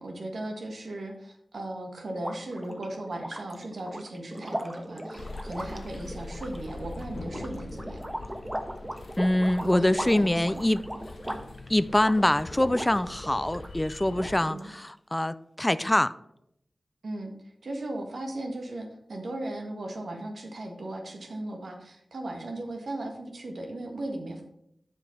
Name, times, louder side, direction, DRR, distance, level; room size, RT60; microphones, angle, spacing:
voice 1, 0.0-8.1 9.6-10.6 14.5-14.7 17.0-17.3 17.6-24.4, right 1 dB, 80° right, 3 dB, 1.6 m, -37 dB
sound 1, 2.1-13.7 14.1-14.9, equal, 15° right, 1.1 m, -38 dB
sound 2, 5.1-14.4, left 3 dB, 85° left, 0.6 m, -43 dB
voice 2, 9.2-10.8 11.7-16.1, left 1 dB, 20° left, 15 dB, 0.4 m, -24 dB
7.8 x 4.9 x 5.7 m, 0.74 s
cardioid pair, 40°, 0 cm